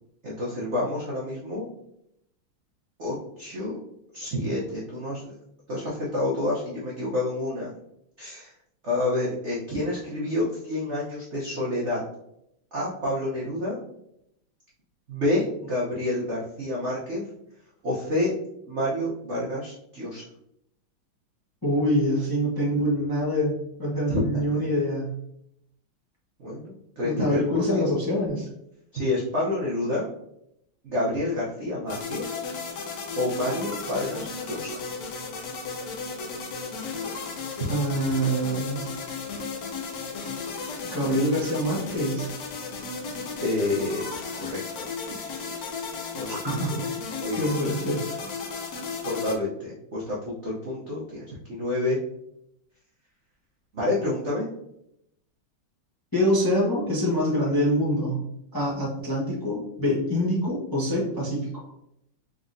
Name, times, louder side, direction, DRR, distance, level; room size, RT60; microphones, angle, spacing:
voice 1, 0.2-1.7 3.0-3.8 4.1-5.3 5.7-7.7 8.2-8.5 8.8-12.0 12.7-13.8 15.1-17.2 17.8-18.3 18.7-20.2 24.1-24.2 26.4-27.8 28.9-30.1 30.8-32.2 33.2-34.8 43.4-45.8 46.2-46.7 47.2-47.5 49.0-52.0 53.7-54.5, left 1 dB, 60° right, -6 dB, 0.7 m, -29 dB
voice 2, 21.6-25.1 27.0-28.5 37.7-38.8 40.9-42.3 46.3-46.8 47.4-48.3 56.1-58.2 58.5-61.5, equal, 15° left, -6 dB, 0.7 m, -25 dB
sound 1, 31.9-49.3, left 4 dB, 70° left, 0.8 m, -34 dB
3.9 x 3.6 x 2.6 m, 0.79 s
omnidirectional pair, 2.3 m